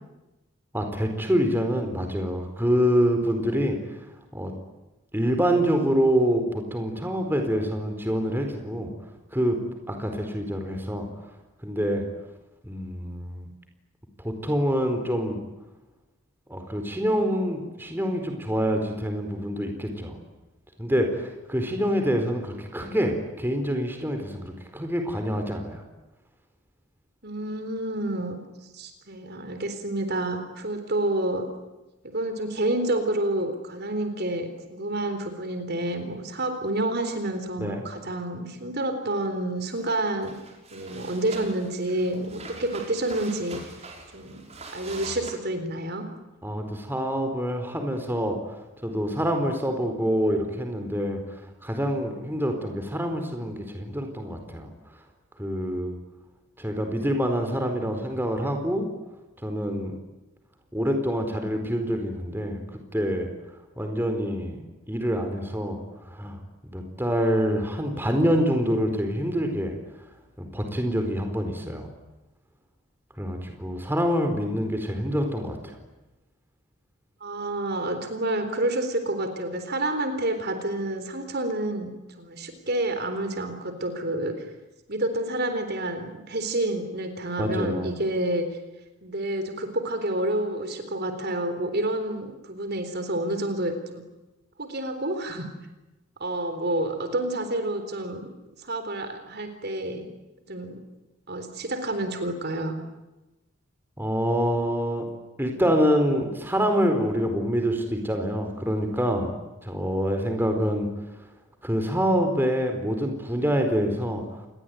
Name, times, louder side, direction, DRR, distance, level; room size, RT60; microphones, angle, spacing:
voice 1, 0.7-3.8 4.3-4.5 5.1-8.9 9.3-9.6 9.9-11.1 11.6-12.0 12.6-13.5 14.2-15.4 16.5-20.1 20.8-25.8 37.6-37.8 46.4-48.4 48.8-54.7 55.4-56.0 56.6-58.9 59.4-60.0 60.7-62.6 62.9-63.3 63.8-64.6 64.9-65.8 66.0-66.4 66.7-69.8 70.4-71.9 73.2-75.7 87.4-87.9 104.0-105.0 105.4-109.3 109.6-110.9 111.6-114.4, equal, 10° right, 5 dB, 4.3 m, -26 dB
voice 2, 27.2-28.4 28.7-31.5 32.0-40.4 40.7-43.7 44.1-44.4 44.7-46.1 77.2-81.9 82.2-84.4 84.9-88.5 89.0-94.0 94.6-95.5 96.2-98.2 98.6-100.1 100.5-100.8 101.3-102.8, right 1 dB, 45° right, 8 dB, 3.8 m, -29 dB
sound 1, 39.7-39.9 40.2-45.3, right 3 dB, 30° right, 5.4 m, -43 dB
28.5 x 22.0 x 9.4 m, 1.0 s
head